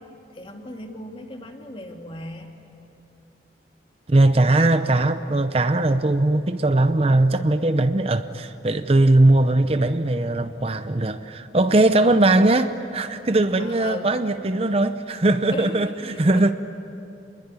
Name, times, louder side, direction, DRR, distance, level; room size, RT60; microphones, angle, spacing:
voice 1, 0.3-2.5 12.0-12.2 13.6-14.1 15.5-16.5, left 1 dB, 30° left, 2.3 m, -37 dB
voice 2, 4.1-16.5, right 2 dB, 35° right, 0.7 m, -20 dB
28.0 x 21.0 x 9.8 m
head